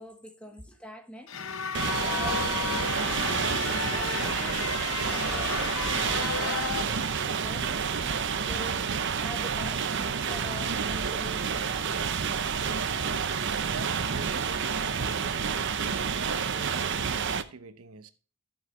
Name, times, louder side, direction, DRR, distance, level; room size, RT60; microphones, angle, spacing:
voice 1, 0.0-1.4 2.0-3.2 3.5-8.8 9.2-12.0, equal, 5° left, 1.1 m, -45 dB
sound 1, 1.3-6.8, left 5 dB, 65° left, 0.9 m, -32 dB
voice 2, 1.3-2.0 13.6-15.4 16.0-18.1, right 4 dB, 80° right, 0.9 m, -45 dB
sound 2, 1.7-17.4, right 6 dB, 55° right, 0.7 m, -29 dB
14.5 x 6.2 x 3.1 m
head